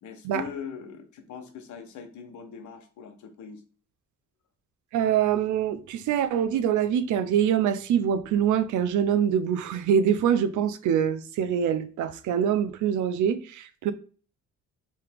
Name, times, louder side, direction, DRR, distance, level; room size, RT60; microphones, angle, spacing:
voice 1, 0.0-3.6, left 7 dB, 75° left, 0.9 m, -41 dB
voice 2, 4.9-13.9, right 8 dB, 75° right, 0.5 m, -24 dB
3.2 x 2.8 x 3.4 m
cardioid pair, 90°, 30 cm